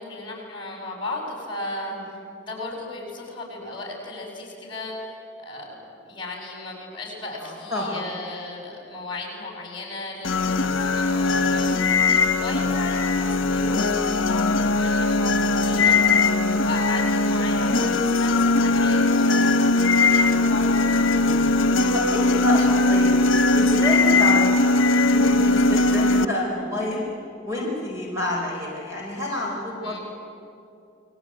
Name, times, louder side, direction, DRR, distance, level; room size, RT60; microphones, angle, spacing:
voice 1, 0.0-19.5 20.0-21.1 29.8-30.0, left 2 dB, 25° left, 0 dB, 7.3 m, -36 dB
voice 2, 7.4-8.1 21.9-23.3 23.5-27.0 27.4-30.0, left 1 dB, 15° right, -3 dB, 4.5 m, -29 dB
sound 1, 10.2-26.3, left 3 dB, 75° left, 1.1 m, -20 dB
28.5 x 22.0 x 9.1 m, 2.6 s
head